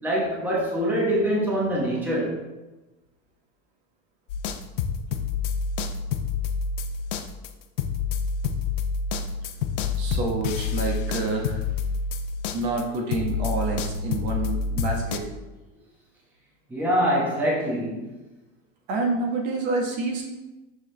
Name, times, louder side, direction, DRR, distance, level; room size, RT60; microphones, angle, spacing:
voice 1, 0.0-2.3 16.7-18.1, equal, 5° right, -5 dB, 1.0 m, -24 dB
sound 1, 4.3-12.8 13.1-15.2, left 5 dB, 65° left, 0.6 m, -28 dB
voice 2, 10.0-11.6 12.5-15.2 18.9-20.2, right 3 dB, 55° right, 0 dB, 1.3 m, -28 dB
6.3 x 4.8 x 3.3 m, 1.1 s
supercardioid pair, 155°, 39 cm